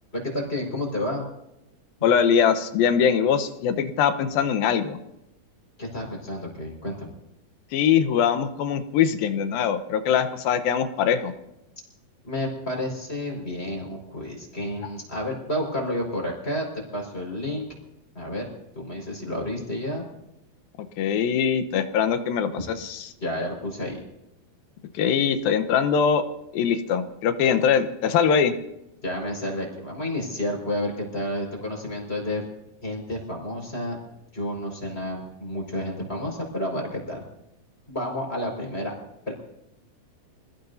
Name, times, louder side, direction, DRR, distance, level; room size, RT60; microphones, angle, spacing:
voice 1, 0.1-1.3 5.8-7.1 12.2-16.7 16.9-17.6 18.1-18.4 18.7-20.1 23.2-24.0 29.0-32.4 32.8-34.0 34.3-37.2 37.9-38.9 39.3-39.4, left 1 dB, 15° left, 0 dB, 5.0 m, -30 dB
voice 2, 2.0-5.0 7.7-11.3 21.0-22.5 22.8-23.0 24.9-26.2 26.5-28.6, left 7 dB, 80° left, 9 dB, 2.7 m, -22 dB
26.5 x 18.0 x 2.7 m, 0.86 s
omnidirectional pair, 4.3 m